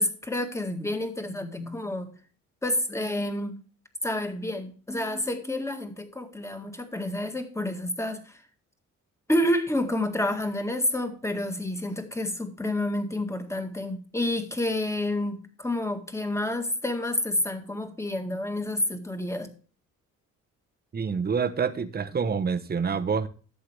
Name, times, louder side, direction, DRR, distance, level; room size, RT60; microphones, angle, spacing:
voice 1, 0.0-2.1 2.6-3.6 4.0-8.4 9.3-19.5, left 1 dB, 10° left, 1.8 m, -29 dB
voice 2, 20.9-23.3, right 6 dB, 30° right, 1.0 m, -27 dB
12.0 x 7.7 x 3.3 m
cardioid pair, 90°, 30 cm